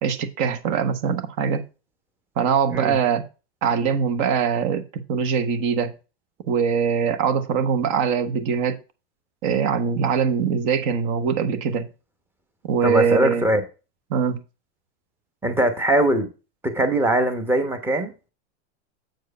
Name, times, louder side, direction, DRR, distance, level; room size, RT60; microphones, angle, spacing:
voice 1, 0.0-1.6 2.4-3.2 3.6-4.8 5.1-5.9 6.5-8.8 9.4-11.9 12.6-13.5 14.1-14.4, right 7 dB, 40° right, 1.2 m, -22 dB
voice 2, 12.8-13.6 15.4-16.3 16.6-18.3, right 1 dB, 5° right, 1.0 m, -21 dB
7.8 x 4.7 x 5.3 m
supercardioid pair, 150°, 35 cm